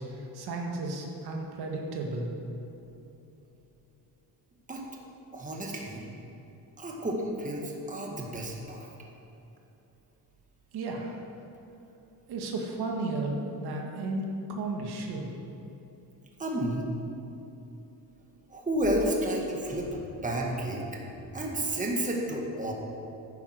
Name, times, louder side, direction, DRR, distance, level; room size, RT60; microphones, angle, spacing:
voice 1, 0.0-2.4 10.7-11.2 12.3-15.3, right 2 dB, 70° right, 1 dB, 1.9 m, -34 dB
voice 2, 5.3-6.1 6.8-8.9 16.4-16.9 18.5-22.7, right 1 dB, 20° right, -1 dB, 1.8 m, -31 dB
10.5 x 9.9 x 6.4 m, 3.0 s
cardioid pair, 130°, 40 cm